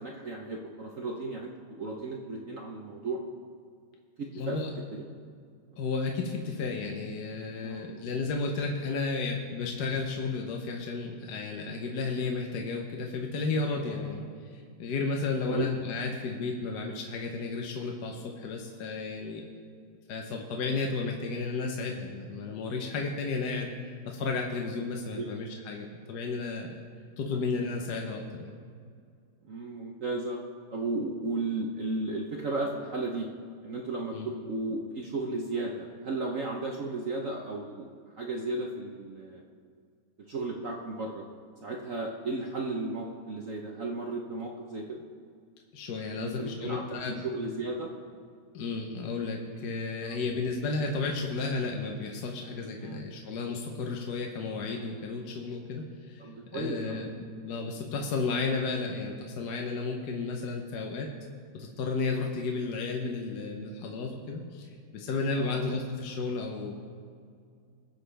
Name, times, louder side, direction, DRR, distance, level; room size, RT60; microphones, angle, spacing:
voice 1, 0.0-3.2 4.2-4.6 4.9-5.0 7.6-7.8 13.8-14.0 15.5-15.7 25.1-25.2 27.3-27.4 29.4-30.4 30.7-33.3 33.6-37.9 38.2-39.5 40.3-41.3 41.6-45.0 46.2-47.9 50.0-50.2 52.8-53.0 56.2-57.1 65.3-65.6, right 2 dB, 60° right, 0 dB, 0.9 m, -34 dB
voice 2, 4.3-4.7 5.8-19.4 20.1-26.7 27.2-28.5 34.1-34.3 45.7-47.2 48.5-56.2 56.5-61.1 61.5-66.7, left 4 dB, 60° left, 1 dB, 1.3 m, -33 dB
21.5 x 7.6 x 3.4 m, 2.2 s
omnidirectional pair, 2.4 m